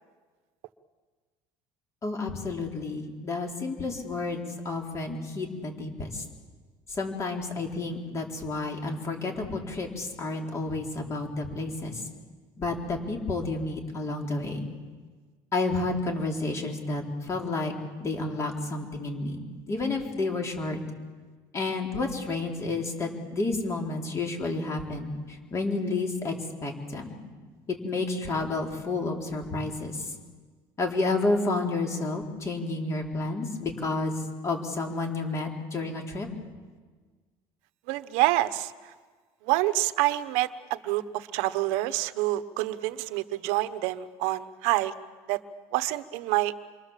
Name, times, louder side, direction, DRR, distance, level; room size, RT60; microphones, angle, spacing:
voice 1, 2.0-6.2 6.9-12.0 12.6-14.7 15.5-17.7 18.0-19.4 19.7-20.8 21.5-26.3 26.6-27.2 27.7-30.1 30.8-34.1 34.4-36.3, left 3 dB, 30° left, 1 dB, 4.1 m, -30 dB
voice 2, 37.9-38.9 39.4-44.9 45.3-45.4 45.7-46.5, right 16 dB, 90° right, 12 dB, 1.1 m, -27 dB
28.0 x 23.5 x 7.5 m, 1.4 s
cardioid pair, 145°, 10 cm